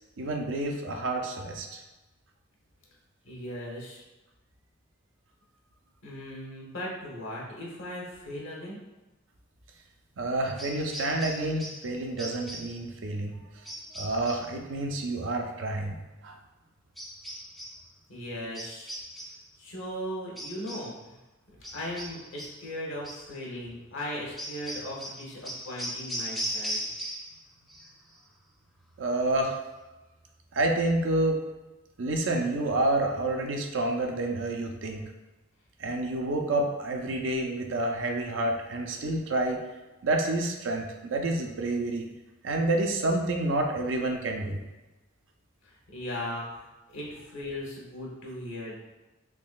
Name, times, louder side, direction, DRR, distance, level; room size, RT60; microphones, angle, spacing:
voice 1, 0.2-1.8 10.2-13.4 13.9-16.3 29.0-29.6 30.5-31.4 32.0-35.0 35.8-39.6 40.0-42.0 42.4-44.6, right 2 dB, 70° right, 2 dB, 0.5 m, -29 dB
voice 2, 3.2-4.0 6.0-8.8 18.1-18.9 19.6-21.1 21.7-26.8 45.6-48.8, left 1 dB, 80° left, -4 dB, 1.0 m, -38 dB
sound 1, 10.6-11.9 12.2-12.8 13.6-14.5 17.0-17.8 18.5-19.5 20.4-21.0 21.6-22.6 23.0-23.3 24.4-27.4 27.7-28.2, equal, ahead, 0.4 m, -38 dB
3.6 x 3.0 x 2.4 m, 1.1 s
head